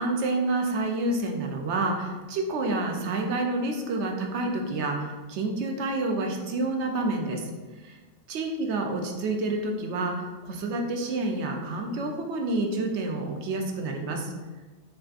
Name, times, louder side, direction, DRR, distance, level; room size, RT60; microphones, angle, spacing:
voice 1, 0.0-7.5 7.8-8.0 8.3-14.3, right 2 dB, 70° right, 2 dB, 0.9 m, -28 dB
5.3 x 2.4 x 2.5 m, 1.2 s
omnidirectional pair, 1.2 m